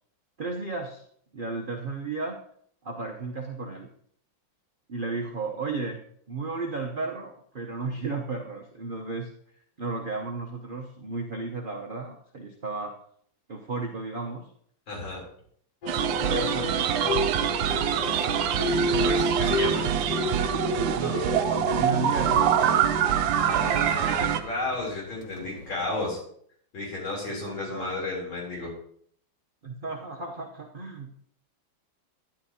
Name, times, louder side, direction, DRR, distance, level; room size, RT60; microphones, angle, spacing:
voice 1, 0.4-1.0 1.3-2.4 2.8-3.9 4.9-6.0 6.3-9.3 9.8-12.9 13.5-14.4 16.3-17.1 21.0-22.7 27.3-27.9 29.6-31.1, right 3 dB, 50° right, 1 dB, 0.6 m, -34 dB
voice 2, 14.9-15.2 18.7-19.9 23.4-26.2 26.7-28.7, left 2 dB, 80° left, -3 dB, 4.2 m, -33 dB
sound 1, 15.8-26.1, left 2 dB, 55° left, 1.6 m, -32 dB
sound 2, 15.9-24.4, right 10 dB, 80° right, 1.4 m, -25 dB
11.5 x 10.5 x 2.8 m, 0.64 s
omnidirectional pair, 2.1 m